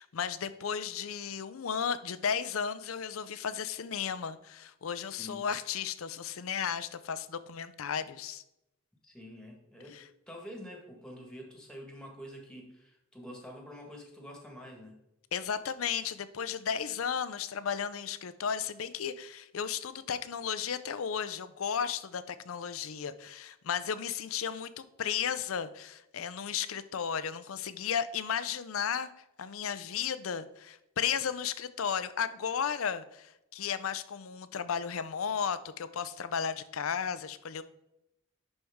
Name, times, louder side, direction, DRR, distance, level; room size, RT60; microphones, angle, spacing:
voice 1, 0.0-8.4 15.3-29.1 29.4-37.6, left 7 dB, 90° left, 14 dB, 0.5 m, -34 dB
voice 2, 9.0-10.0 10.3-15.0, equal, 5° left, 1 dB, 1.5 m, -47 dB
10.5 x 4.5 x 3.6 m, 0.87 s
head